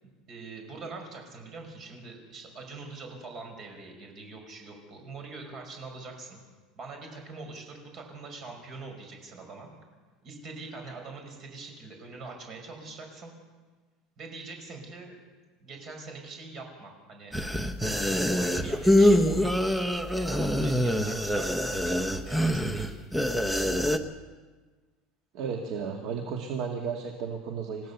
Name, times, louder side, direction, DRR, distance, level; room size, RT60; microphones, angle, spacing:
voice 1, 0.3-6.4 6.8-9.7 10.2-13.3 14.2-15.1 15.6-17.4 17.8-23.0, right 3 dB, 30° right, 3 dB, 5.1 m, -43 dB
sound 1, 17.3-24.0, equal, ahead, 0.8 m, -25 dB
voice 2, 25.3-27.9, right 6 dB, 45° right, 2 dB, 1.9 m, -33 dB
29.0 x 15.0 x 6.9 m, 1.4 s
cardioid pair, 180°, 0 cm